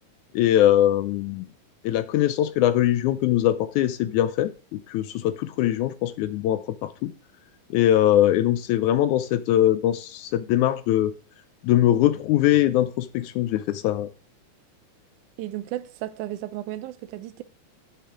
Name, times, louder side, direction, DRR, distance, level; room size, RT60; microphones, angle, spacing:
voice 1, 0.3-1.4 1.8-7.1 7.7-11.1 11.6-14.1, left 12 dB, 80° left, 2.0 m, -22 dB
voice 2, 15.4-17.4, right 14 dB, 80° right, 2.1 m, -34 dB
8.8 x 6.8 x 4.9 m
omnidirectional pair, 3.6 m